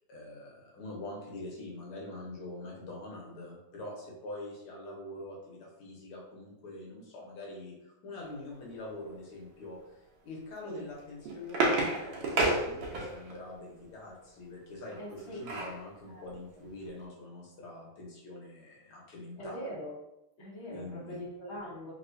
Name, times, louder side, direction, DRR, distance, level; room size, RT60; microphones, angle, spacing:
voice 1, 0.1-9.8 10.2-19.7 20.7-21.2, left 2 dB, 80° left, -3 dB, 1.9 m, -44 dB
sound 1, 10.9-13.4 14.9-15.8 16.3-16.4 16.7-16.9, right 2 dB, 85° right, 1.7 m, -30 dB
voice 2, 15.0-15.4 16.1-16.2 16.5-16.6 19.4-19.9 20.4-21.9, equal, 40° left, -8 dB, 1.1 m, -42 dB
4.1 x 2.9 x 2.6 m, 0.88 s
omnidirectional pair, 2.3 m